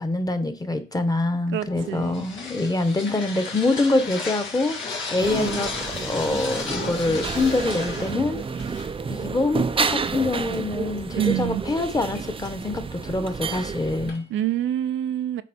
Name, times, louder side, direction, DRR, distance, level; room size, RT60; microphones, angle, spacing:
voice 1, 0.0-5.7 6.0-8.4 9.1-14.2, left 2 dB, 20° left, 1.2 m, -25 dB
sound 1, 1.5-2.2 3.0-3.8 6.5-7.2 7.6-7.7 7.9-9.4 9.8-9.9 10.5-11.3 11.7-12.5 12.9-13.1 13.9-14.3, left 3 dB, 55° left, 3.1 m, -42 dB
voice 2, 1.5-2.3 5.3-5.6 11.1-11.6 14.3-15.4, right 11 dB, 75° right, 0.5 m, -26 dB
sound 2, 1.8-9.3, left 3 dB, 75° left, 1.6 m, -34 dB
sound 3, 5.2-14.1, right 5 dB, 25° right, 0.5 m, -30 dB
8.5 x 3.6 x 4.3 m
cardioid pair, 90°, 20 cm